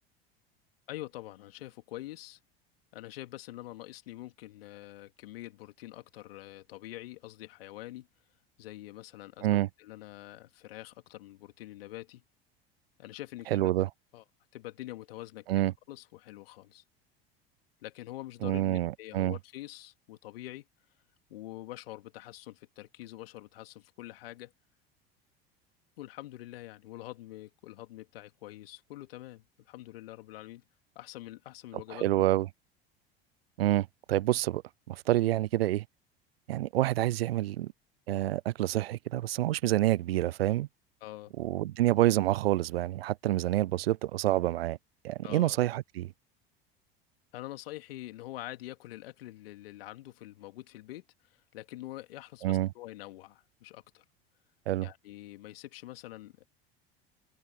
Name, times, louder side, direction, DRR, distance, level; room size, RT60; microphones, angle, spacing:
voice 1, 0.9-2.4 2.9-8.1 8.6-12.2 13.0-13.7 14.1-14.2 14.5-16.8 17.8-20.6 21.3-24.5 26.0-30.6 30.9-32.2 41.0-41.3 45.2-45.6 47.3-51.0 51.5-54.0 54.8-56.5, left 16 dB, 75° left, 2.9 m, -45 dB
voice 2, 13.5-13.9 15.5-15.7 18.4-19.4 31.9-32.5 33.6-34.6 34.9-35.8 36.5-37.7 38.1-40.7 41.4-44.8 45.0-46.1 52.4-52.7 54.7-54.9, right 15 dB, 80° right, 0.6 m, -27 dB
open air
hypercardioid pair, 75°, 30 cm